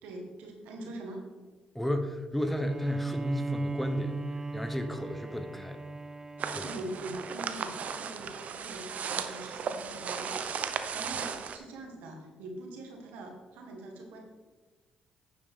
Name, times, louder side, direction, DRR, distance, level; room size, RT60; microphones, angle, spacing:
voice 1, 0.0-1.2 6.6-10.4 10.7-14.2, right 1 dB, 80° right, 2 dB, 1.7 m, -43 dB
voice 2, 1.7-4.2 4.5-5.9 6.5-6.7, left 1 dB, 5° left, 7 dB, 1.0 m, -33 dB
Bowed string instrument, 2.4-7.9, right 3 dB, 20° right, 0.4 m, -38 dB
sound 1, 6.4-11.6, right 6 dB, 60° right, 0.7 m, -36 dB
9.6 x 7.0 x 3.7 m, 1.3 s
supercardioid pair, 55°, 3 cm